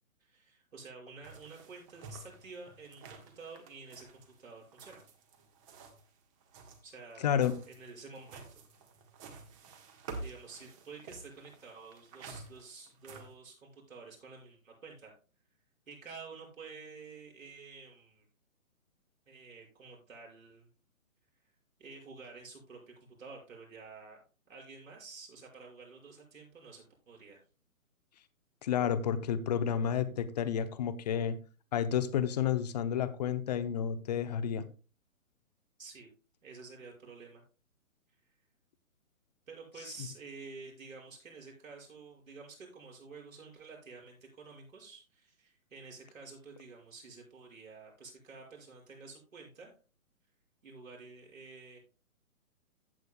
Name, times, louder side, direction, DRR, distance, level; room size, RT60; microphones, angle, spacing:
voice 1, 0.2-5.0 6.8-7.4 7.7-8.6 10.2-15.2 15.9-18.3 19.3-20.7 21.8-24.2 24.5-27.4 35.8-36.1 36.4-37.4 39.5-49.7 50.6-51.8, right 4 dB, 65° right, -1 dB, 5.7 m, -50 dB
sound 1, 1.2-6.1 6.4-13.3, right 3 dB, 25° right, 1.3 m, -50 dB
voice 2, 28.6-31.4 31.7-34.6, left 8 dB, 30° left, 12 dB, 0.8 m, -30 dB
15.0 x 7.9 x 2.2 m, 0.36 s
figure-of-eight pair, 135°, 43 cm